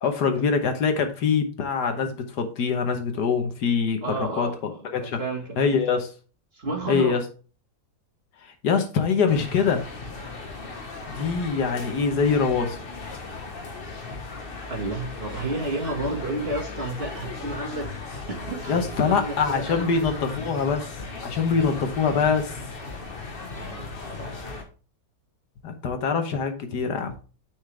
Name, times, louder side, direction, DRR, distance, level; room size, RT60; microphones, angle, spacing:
voice 1, 0.0-5.2 5.6-6.1 6.9-7.2 8.4-9.8 11.1-12.8 18.7-20.9 21.2-22.6 25.6-27.1, left 5 dB, 70° left, 6 dB, 1.6 m, -24 dB
voice 2, 4.0-6.0 6.5-7.2 14.7-17.9 18.3-19.9 23.5-24.3, right 2 dB, 35° right, 1 dB, 1.7 m, -32 dB
sound 1, 9.3-24.6, left 3 dB, 35° left, 1.3 m, -36 dB
9.5 x 5.1 x 3.3 m, 0.36 s
omnidirectional pair, 1.9 m